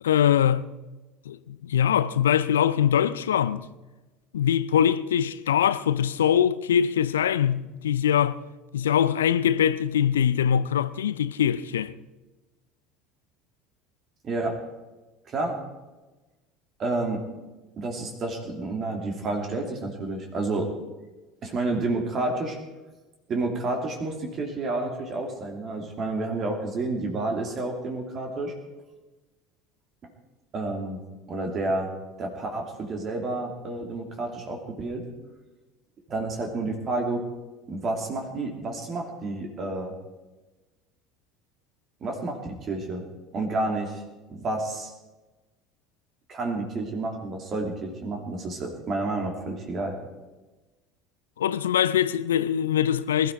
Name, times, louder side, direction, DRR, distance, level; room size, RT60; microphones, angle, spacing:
voice 1, 0.0-0.7 1.3-3.6 4.3-8.4 8.7-11.9 51.4-53.3, left 9 dB, 75° left, 0.5 m, -23 dB
voice 2, 14.2-14.6 15.3-15.6 16.8-17.2 17.8-20.7 21.4-22.6 23.3-28.5 30.5-31.0 31.3-31.9 32.2-35.0 36.1-37.2 37.7-39.9 42.0-43.0 43.3-44.0 44.3-44.9 46.3-50.0, right 2 dB, 40° right, 3.1 m, -30 dB
21.0 x 13.0 x 4.8 m
figure-of-eight pair, 65°, 0 cm